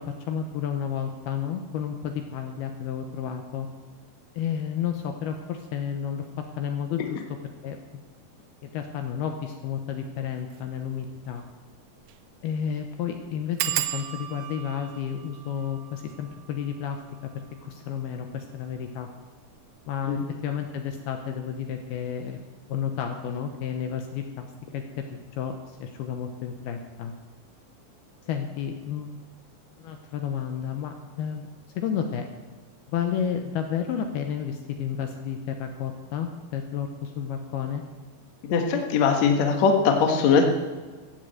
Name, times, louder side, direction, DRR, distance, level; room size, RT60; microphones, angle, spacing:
voice 1, 0.0-3.7 4.4-6.3 6.6-7.2 7.6-7.8 8.6-11.4 12.4-17.0 17.2-19.1 19.9-22.4 22.7-24.5 24.7-27.1 28.3-29.1 29.8-31.5 31.8-32.2 32.9-37.8, left 8 dB, 75° left, 5 dB, 2.6 m, -31 dB
sound 1, 10.4-10.6 11.0-11.1 11.4-11.5 12.0-12.3 12.5-12.6 13.6-18.9 19.5-20.1 20.4-20.7 21.0-21.1, right 14 dB, 85° right, 2.1 m, -36 dB
voice 2, 38.4-40.4, left 5 dB, 60° left, 3 dB, 1.9 m, -21 dB
15.0 x 8.2 x 7.8 m, 1.4 s
omnidirectional pair, 5.1 m